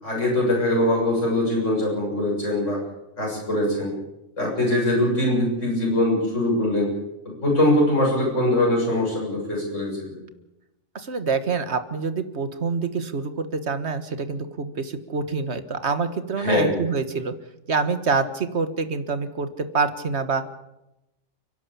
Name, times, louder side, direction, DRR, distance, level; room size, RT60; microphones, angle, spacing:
voice 1, 0.0-2.8 3.2-3.9 4.4-6.9 7.4-10.2 16.4-16.8, left 1 dB, 90° left, -3 dB, 7.5 m, -22 dB
voice 2, 11.0-17.3 17.7-20.4, right 4 dB, 65° right, 10 dB, 1.8 m, -26 dB
30.0 x 11.5 x 8.5 m, 0.92 s
omnidirectional pair, 1.2 m